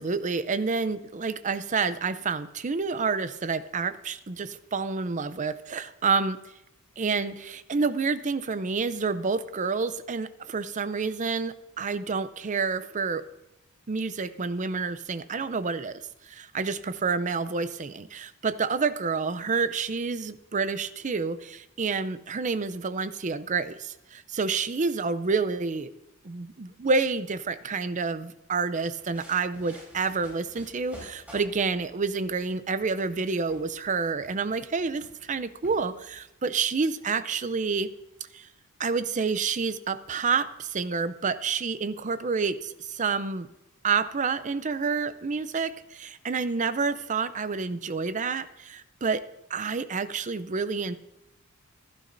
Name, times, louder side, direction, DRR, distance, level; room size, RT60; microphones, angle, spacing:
voice 1, 0.0-6.4 7.0-13.2 13.9-25.9 26.2-37.9 38.3-38.5 38.8-43.5 43.8-49.2 49.5-51.0, right 4 dB, 35° right, 13 dB, 0.5 m, -29 dB
sound 1, 28.7-36.2, equal, 5° right, 5.1 m, -52 dB
15.0 x 12.5 x 2.6 m, 0.88 s
head